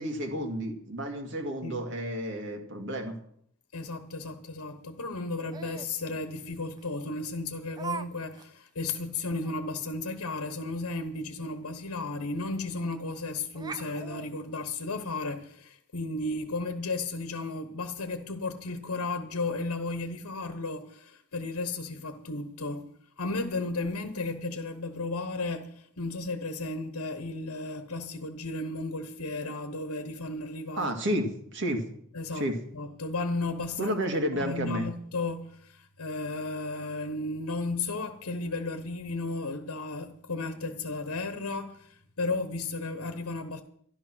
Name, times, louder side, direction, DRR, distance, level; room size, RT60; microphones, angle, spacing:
voice 1, 0.0-3.2 30.8-31.8 32.3-32.6 33.8-34.9, equal, 55° right, 2.2 m, -31 dB
voice 2, 3.7-22.9 23.2-30.9 32.1-32.5 32.7-33.9 34.3-43.6, left 3 dB, 85° left, 1.1 m, -34 dB
Laughter, 5.5-5.9 6.8-6.9 7.8-8.1 8.3-8.5 9.0-9.1 9.4-9.5 11.5-11.6 11.9-12.0 12.9-13.2 13.5-15.2, right 4 dB, 20° right, 0.5 m, -40 dB
12.0 x 11.5 x 6.1 m
head